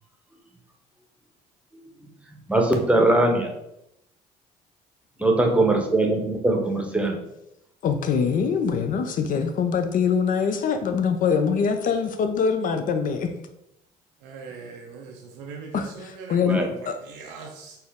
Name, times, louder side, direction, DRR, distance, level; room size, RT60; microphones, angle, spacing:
voice 1, 1.7-2.1 2.5-3.5 5.2-7.2 16.4-16.7, right 2 dB, 5° right, 0.8 m, -21 dB
voice 2, 7.8-13.3 15.7-17.0, left 6 dB, 50° left, 0.5 m, -24 dB
voice 3, 14.2-16.4 17.1-17.8, right 5 dB, 80° right, 0.5 m, -40 dB
4.2 x 2.0 x 3.6 m
supercardioid pair, 70°, 18 cm